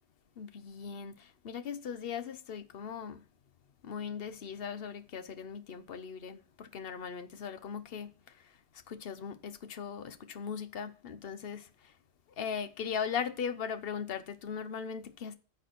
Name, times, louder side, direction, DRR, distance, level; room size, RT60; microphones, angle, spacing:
voice 1, 0.4-3.2 3.8-8.1 8.9-11.7 12.4-15.3, left 7 dB, 60° left, 1.1 m, -39 dB
14.0 x 4.9 x 5.9 m
omnidirectional pair, 1.1 m